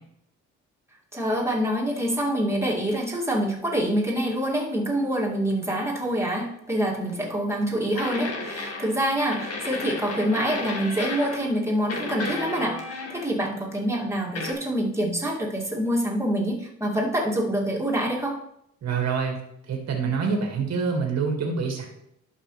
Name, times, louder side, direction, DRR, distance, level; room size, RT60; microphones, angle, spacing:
voice 1, 1.1-18.4, right 1 dB, 10° right, -3 dB, 2.4 m, -26 dB
sound 1, 7.1-7.2 8.0-9.1 9.3-11.5 11.9-13.5 14.4-14.5, left 3 dB, 55° left, 1.8 m, -33 dB
voice 2, 18.8-19.4 19.7-21.9, right 5 dB, 60° right, 1 dB, 2.0 m, -26 dB
11.5 x 5.5 x 3.3 m, 0.75 s
cardioid pair, 90°, 30 cm